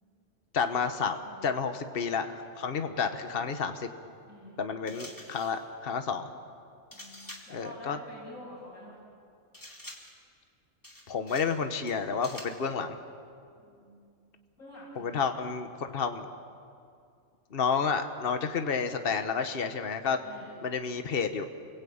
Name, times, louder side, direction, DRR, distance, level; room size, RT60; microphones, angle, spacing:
voice 1, 0.5-1.2 1.4-3.9 4.6-6.3 7.5-8.0 11.1-13.0 15.0-16.2 17.5-20.2 20.6-21.5, left 5 dB, 45° left, 7 dB, 1.4 m, -30 dB
voice 2, 4.3-5.1 6.9-9.0 13.6-14.2 14.6-15.3 20.2-20.6, left 1 dB, 80° left, -7 dB, 7.8 m, -48 dB
sound 1, 4.9-5.6 6.9-7.6 9.5-10.2 10.8-11.6 11.9-12.6, left 1 dB, 15° left, 2.6 m, -47 dB
29.5 x 22.0 x 8.8 m, 2.4 s
omnidirectional pair, 1.4 m